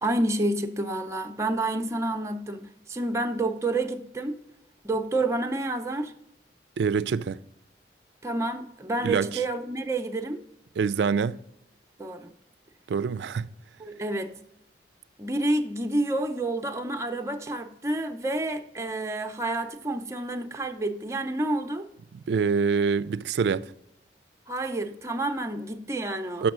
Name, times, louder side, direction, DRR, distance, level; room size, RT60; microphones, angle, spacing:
voice 1, 0.0-2.6 2.9-4.4 4.8-6.1 8.2-10.4 12.0-12.3 13.8-14.3 15.2-21.8 24.5-26.5, right 2 dB, 15° right, 0.5 m, -29 dB
voice 2, 6.8-7.4 9.0-9.4 10.8-11.4 12.9-13.5 22.1-23.7 26.4-26.5, right 5 dB, 65° right, 0.3 m, -25 dB
6.2 x 6.0 x 6.1 m
head